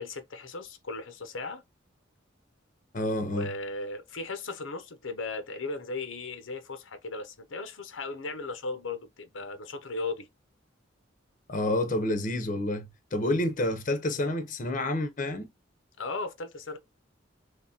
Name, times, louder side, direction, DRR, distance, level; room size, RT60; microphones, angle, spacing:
voice 1, 0.0-1.6 3.3-10.3 16.0-16.8, left 3 dB, 85° left, 0.8 m, -36 dB
voice 2, 2.9-3.5 11.5-15.5, left 1 dB, 40° left, 0.7 m, -29 dB
3.5 x 3.2 x 2.8 m
head